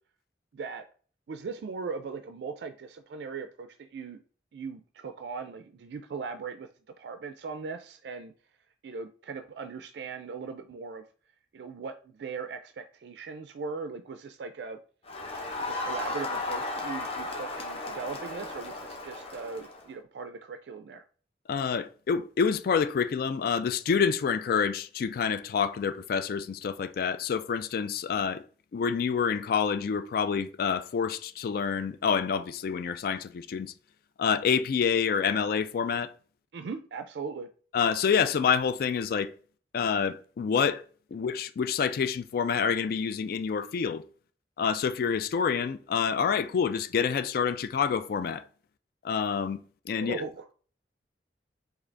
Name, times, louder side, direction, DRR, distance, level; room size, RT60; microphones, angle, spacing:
voice 1, 0.5-0.8 1.3-4.2 4.5-6.7 7.0-8.3 8.8-11.0 11.5-14.8 15.6-21.0 36.5-37.5 50.0-50.5, right 5 dB, 70° right, 0.3 m, -39 dB
Crowd, 15.1-19.9, left 2 dB, 35° left, 0.8 m, -35 dB
voice 2, 21.5-28.4 28.7-33.7 34.2-36.1 37.7-39.3 39.7-40.8 41.1-44.0 44.6-48.4 49.0-49.6 49.9-50.2, left 6 dB, 55° left, 0.3 m, -27 dB
3.8 x 2.7 x 3.3 m
head